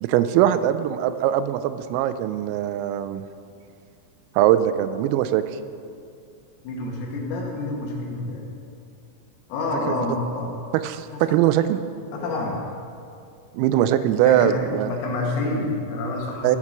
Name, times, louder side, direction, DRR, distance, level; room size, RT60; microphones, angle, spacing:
voice 1, 0.0-3.2 4.4-5.4 10.1-10.2 10.7-11.8 13.5-14.9 16.4-16.6, right 11 dB, 90° right, 12 dB, 3.2 m, -21 dB
voice 2, 6.6-8.5 9.5-10.6 11.1-11.4 12.1-12.6 14.3-14.5 14.9-16.6, left 2 dB, 80° left, -2 dB, 4.2 m, -28 dB
15.0 x 5.9 x 6.0 m, 2.4 s
omnidirectional pair, 5.9 m